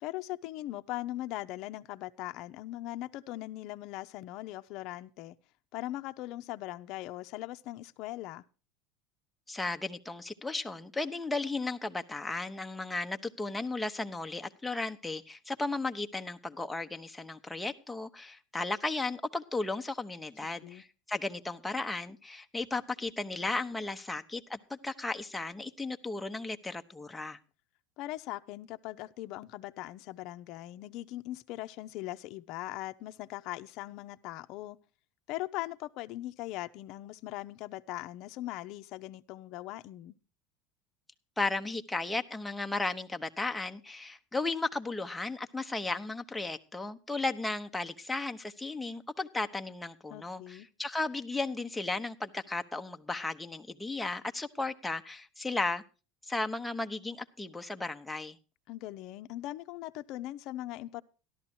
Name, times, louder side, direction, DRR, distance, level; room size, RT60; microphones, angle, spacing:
voice 1, 0.0-5.4 5.7-8.4 20.6-20.8 28.0-34.8 35.3-40.1 50.1-50.7 58.7-61.0, left 16 dB, 55° left, 0.7 m, -40 dB
voice 2, 9.5-27.4 41.4-55.8 56.2-58.4, left 3 dB, 5° left, 0.9 m, -35 dB
13.5 x 12.0 x 4.3 m
supercardioid pair, 125°, 0 cm